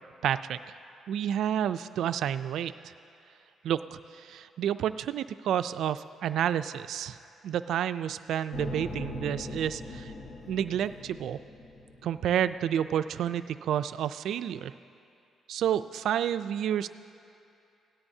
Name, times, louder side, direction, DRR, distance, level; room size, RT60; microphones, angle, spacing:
voice 1, 0.2-0.6 1.1-2.7 3.6-7.2 7.4-10.1 10.5-11.4 12.0-14.7 15.5-16.9, right 10 dB, 75° right, 12 dB, 0.3 m, -30 dB
sound 1, 8.5-12.7, left 2 dB, 70° left, 1.3 m, -41 dB
17.5 x 13.0 x 2.7 m, 2.6 s
cardioid pair, 90°, 0 cm